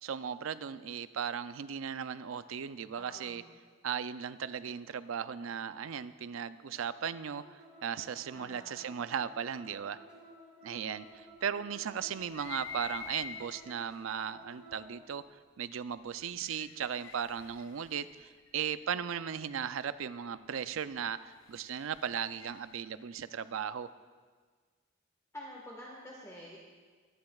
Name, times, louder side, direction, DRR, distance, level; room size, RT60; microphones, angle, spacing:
voice 1, 0.0-3.4 3.8-10.0 10.6-23.9, right 8 dB, 85° right, 13 dB, 0.4 m, -37 dB
voice 2, 2.9-3.4 8.3-8.8 25.3-26.6, equal, 15° left, -4 dB, 1.4 m, -48 dB
sound 1, 6.7-15.0, right 1 dB, 5° right, 2.7 m, -55 dB
sound 2, 12.2-13.9 14.7-14.8 16.1-19.0 21.1-22.8, left 6 dB, 70° left, 0.6 m, -47 dB
23.0 x 9.8 x 2.4 m, 1.5 s
head